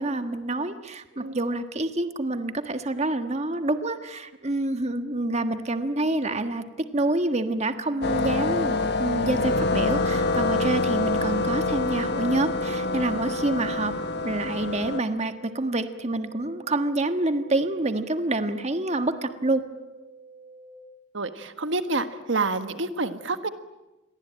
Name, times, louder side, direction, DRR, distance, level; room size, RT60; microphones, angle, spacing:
voice 1, 0.0-13.9 14.2-19.6, right 2 dB, 35° right, 8 dB, 1.6 m, -27 dB
sound 1, 8.0-15.0, left 3 dB, 60° left, 1.4 m, -26 dB
sound 2, 14.8-20.8, right 5 dB, 10° right, 3.6 m, -48 dB
voice 2, 21.1-23.5, right 3 dB, 75° right, 9 dB, 1.6 m, -28 dB
28.5 x 23.0 x 8.9 m, 1.0 s
head